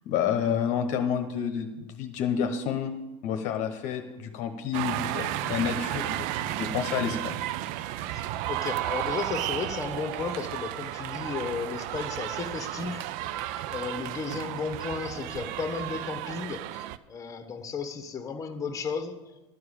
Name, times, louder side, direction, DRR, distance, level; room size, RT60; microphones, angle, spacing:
voice 1, 0.1-7.4, left 8 dB, 50° left, 6 dB, 1.0 m, -29 dB
sound 1, 4.7-17.0, right 14 dB, 55° right, 0.5 m, -33 dB
voice 2, 8.1-13.3 13.7-19.2, left 5 dB, 20° left, 7 dB, 1.3 m, -34 dB
12.0 x 4.7 x 8.6 m, 1.0 s
hypercardioid pair, 90°, 16 cm